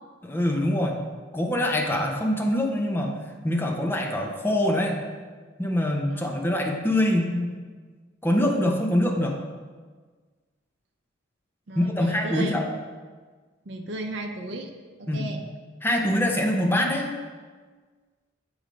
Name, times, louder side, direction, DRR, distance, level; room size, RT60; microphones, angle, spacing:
voice 1, 0.2-1.0 1.3-3.2 3.4-5.0 5.6-7.5 8.2-9.4 11.8-12.7 15.1-15.2 15.8-17.1, left 1 dB, 10° left, 1 dB, 0.6 m, -24 dB
voice 2, 11.7-12.5 13.7-14.7 15.0-15.4, right 2 dB, 65° right, 3 dB, 0.6 m, -34 dB
7.8 x 3.2 x 5.1 m, 1.5 s
head